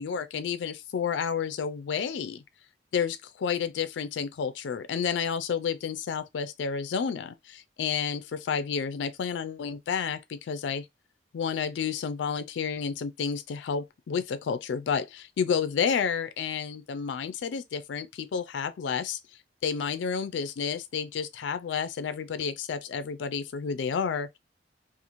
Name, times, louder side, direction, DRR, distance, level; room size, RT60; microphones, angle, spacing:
voice 1, 0.0-2.4 2.9-10.9 11.3-19.2 19.6-24.4, left 6 dB, 80° left, 0.3 m, -30 dB
2.9 x 2.4 x 2.5 m
head